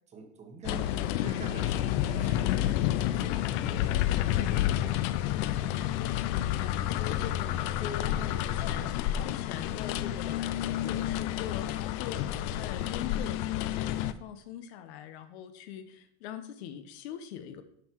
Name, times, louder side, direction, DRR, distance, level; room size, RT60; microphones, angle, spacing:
voice 1, 0.1-5.3, right 3 dB, 20° right, 3 dB, 1.2 m, -47 dB
sound 1, 0.6-14.1, left 12 dB, 45° left, 0.5 m, -30 dB
voice 2, 6.3-17.6, left 9 dB, 65° left, 10 dB, 1.0 m, -42 dB
11.5 x 5.7 x 4.6 m, 0.71 s
cardioid pair, 175°, 35 cm